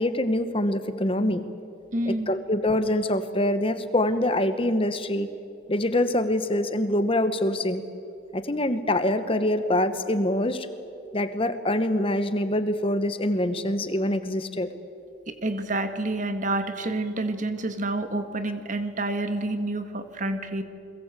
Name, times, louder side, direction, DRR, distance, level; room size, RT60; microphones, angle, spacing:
voice 1, 0.0-1.4 2.1-5.3 5.7-7.8 8.3-10.7 11.1-14.7, left 1 dB, 25° left, 10 dB, 1.1 m, -25 dB
voice 2, 1.9-2.3 15.3-20.6, right 2 dB, 40° right, 8 dB, 1.8 m, -28 dB
29.5 x 22.0 x 8.3 m, 2.6 s
head